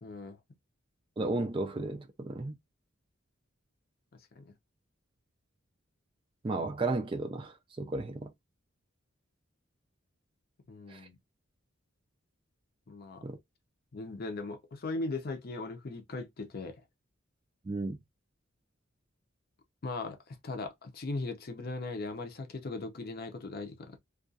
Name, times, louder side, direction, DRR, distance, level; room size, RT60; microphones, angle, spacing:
voice 1, 0.0-0.4 4.3-4.5 10.7-11.2 12.9-13.2 13.9-16.8 19.8-24.0, left 3 dB, 45° left, 0.5 m, -38 dB
voice 2, 1.2-2.6 6.4-8.3 10.9-11.0 13.2-13.4 17.6-18.0, right 2 dB, 25° right, 0.3 m, -34 dB
2.3 x 2.3 x 2.5 m
head